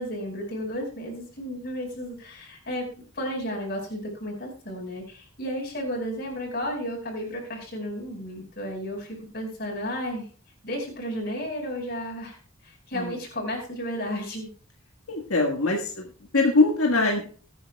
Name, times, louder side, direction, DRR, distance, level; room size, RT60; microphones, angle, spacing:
voice 1, 0.0-2.9 3.1-10.3 10.6-14.5, equal, 45° left, 0 dB, 5.1 m, -33 dB
voice 2, 15.1-16.1 16.3-17.3, left 3 dB, 90° left, 0 dB, 1.7 m, -22 dB
21.0 x 9.4 x 2.3 m, 0.40 s
head